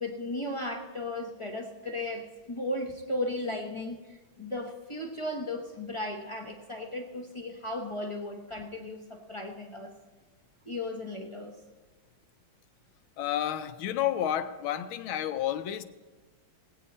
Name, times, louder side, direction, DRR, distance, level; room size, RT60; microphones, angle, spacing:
voice 1, 0.0-9.9 10.6-11.6, left 1 dB, 45° left, 0.4 m, -36 dB
voice 2, 13.2-15.8, left 11 dB, 90° left, 1.5 m, -30 dB
19.5 x 8.5 x 4.2 m
omnidirectional pair, 2.2 m